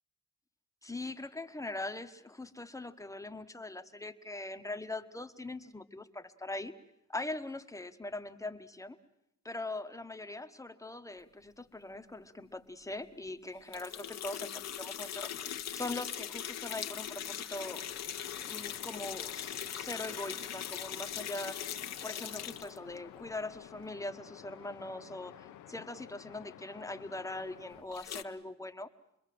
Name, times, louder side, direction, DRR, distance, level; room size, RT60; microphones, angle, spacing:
voice 1, 0.8-6.7 7.1-9.0 9.4-15.3 15.7-17.8 18.5-28.9, left 2 dB, 10° left, 7 dB, 1.3 m, -41 dB
sound 1, 13.7-22.8 27.9-28.2, left 9 dB, 60° left, 1.2 m, -40 dB
sound 2, 17.7-27.8, left 12 dB, 80° left, 1.0 m, -53 dB
27.0 x 21.5 x 7.8 m, 0.82 s
cardioid pair, 90°, 30 cm